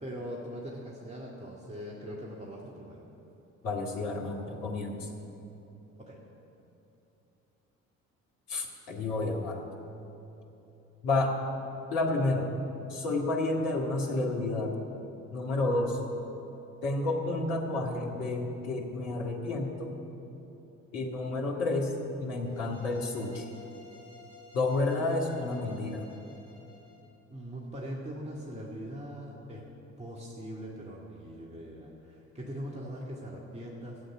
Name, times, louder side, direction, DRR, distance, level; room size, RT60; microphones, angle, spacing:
voice 1, 0.0-3.1 6.0-6.2 27.3-29.6 30.0-34.0, equal, 15° right, -3 dB, 2.1 m, -41 dB
voice 2, 3.6-5.1 8.5-9.7 11.0-11.3 11.9-12.5 12.9-14.7 15.3-16.0 16.8-19.9 20.9-21.9 22.2-23.5 24.5-26.1, left 2 dB, 65° left, -1 dB, 2.1 m, -30 dB
sound 1, 22.3-27.1, left 5 dB, 80° left, 3.0 m, -54 dB
15.0 x 7.8 x 9.3 m, 3.0 s
figure-of-eight pair, 50°, 39 cm